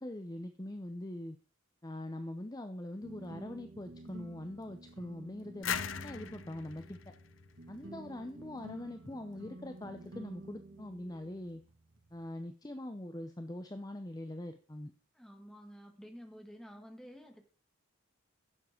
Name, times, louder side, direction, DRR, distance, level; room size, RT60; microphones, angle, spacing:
voice 1, 0.0-1.4 1.8-7.1 7.7-11.6 12.1-14.9, left 1 dB, 20° left, 8 dB, 0.6 m, -43 dB
sound 1, 3.0-12.3, right 2 dB, 65° right, 1.8 m, -51 dB
sound 2, 5.6-8.3, left 8 dB, 70° left, 0.7 m, -40 dB
voice 2, 15.1-17.4, equal, ahead, 4 dB, 1.5 m, -51 dB
11.0 x 7.3 x 5.1 m, 0.38 s
head